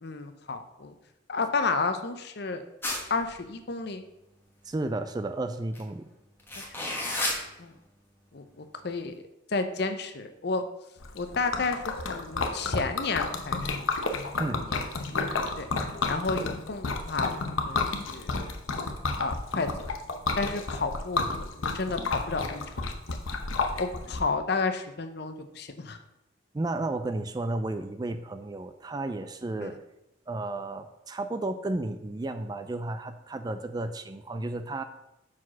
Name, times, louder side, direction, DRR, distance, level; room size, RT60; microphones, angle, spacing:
voice 1, 0.0-0.9 1.3-2.7 3.1-4.0 6.8-7.2 7.6-7.7 8.3-9.1 9.5-10.6 11.1-13.8 14.5-14.7 15.0-15.3 15.6-15.7 16.1-17.4 17.6-17.8 18.1-18.3 19.2-19.7 20.4-22.0 22.3-23.2 23.8-26.0 29.6-29.7, left 4 dB, 50° left, 8 dB, 0.6 m, -31 dB
sound 1, 2.8-3.3 5.7-5.8 6.4-7.4, left 1 dB, 10° left, 1.2 m, -30 dB
voice 2, 4.6-6.1 14.4-14.6 26.5-29.7 30.3-34.8, right 2 dB, 20° right, 8 dB, 0.3 m, -33 dB
Liquid, 11.0-24.2, left 3 dB, 75° left, 0.9 m, -31 dB
5.9 x 4.9 x 6.1 m, 0.90 s
head